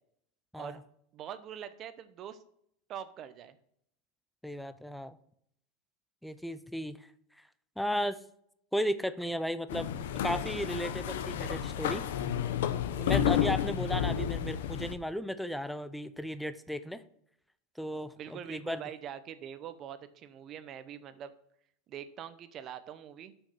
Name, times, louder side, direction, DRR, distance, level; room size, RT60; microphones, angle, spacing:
voice 1, 1.1-2.4 2.9-3.6 13.3-13.5 18.2-21.3 21.9-23.3, right 9 dB, 35° right, 12 dB, 0.7 m, -44 dB
voice 2, 4.4-5.2 6.2-7.0 7.8-8.2 8.7-12.0 13.0-17.0 17.8-18.8, equal, ahead, 13 dB, 0.4 m, -35 dB
sound 1, 9.7-14.9, left 9 dB, 85° left, 0.7 m, -31 dB
6.3 x 6.1 x 5.7 m, 0.70 s
supercardioid pair, 150°, 0 cm